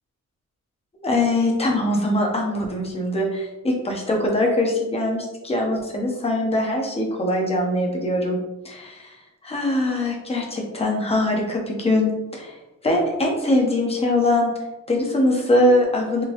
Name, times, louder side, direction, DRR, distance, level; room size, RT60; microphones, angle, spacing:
voice 1, 1.0-8.4 8.6-9.2 9.4-12.6 12.8-14.5 14.9-16.2, left 1 dB, 20° left, 0 dB, 0.7 m, -22 dB
3.7 x 2.9 x 2.6 m, 1.0 s
wide cardioid pair, 155°, 31 cm